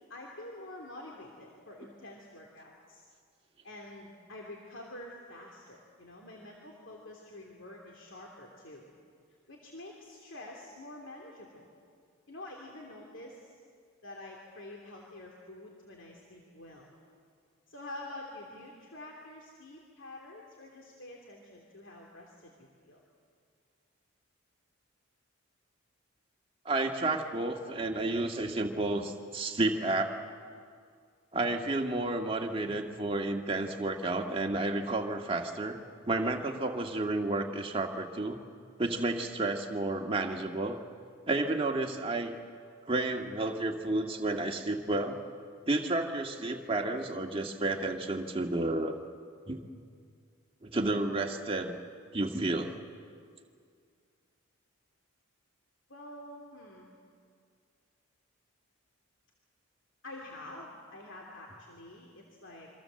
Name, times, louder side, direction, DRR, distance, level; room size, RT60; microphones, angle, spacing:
voice 1, 0.1-3.0 3.6-8.9 9.5-11.7 12.3-13.6 14.0-16.9 17.7-23.0 55.9-56.9 60.0-62.7, left 1 dB, 60° left, -1 dB, 3.1 m, -47 dB
voice 2, 26.7-30.2 31.3-35.8 36.1-38.4 38.8-40.8 41.3-42.3 42.8-45.2 45.7-49.0 49.5-49.6 50.6-51.8 52.1-52.7, right 2 dB, 25° right, 3 dB, 1.8 m, -31 dB
27.0 x 24.5 x 7.7 m, 2.2 s
head